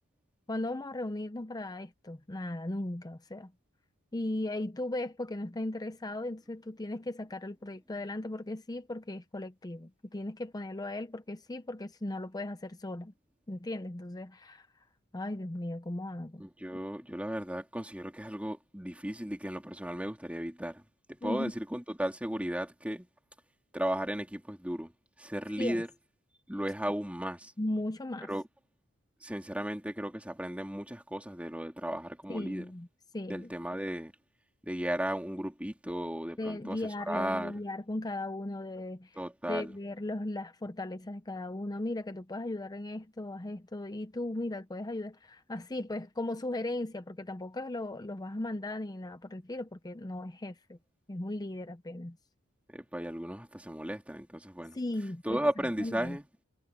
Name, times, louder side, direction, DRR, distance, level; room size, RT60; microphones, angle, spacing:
voice 1, 0.5-3.5 4.1-13.1 13.5-14.7 15.1-16.4 21.2-21.5 25.6-25.8 27.6-28.3 32.3-32.9 33.1-33.5 36.4-39.2 39.5-50.8 51.1-52.2 54.7-55.5 55.8-56.2, left 1 dB, 20° left, 0.6 m, -37 dB
voice 2, 16.4-20.8 21.1-23.1 23.7-24.9 25.2-25.9 26.5-27.5 28.3-28.4 29.2-32.6 33.3-34.1 34.7-36.8 37.1-37.5 39.2-39.7 52.7-54.8 55.2-56.2, right 1 dB, 5° right, 2.8 m, -35 dB
head